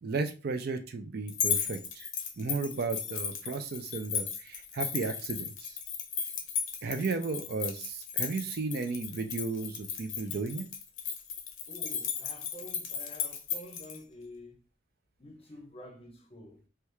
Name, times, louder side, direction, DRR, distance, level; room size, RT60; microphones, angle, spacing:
voice 1, 0.0-2.1 2.4-5.8 6.8-10.7, right 4 dB, 50° right, 0.4 m, -34 dB
sound 1, 1.3-14.0, left 7 dB, 80° left, 0.7 m, -35 dB
voice 2, 11.7-14.6 15.2-16.7, left 1 dB, 30° left, 0.6 m, -48 dB
3.2 x 2.3 x 3.0 m
head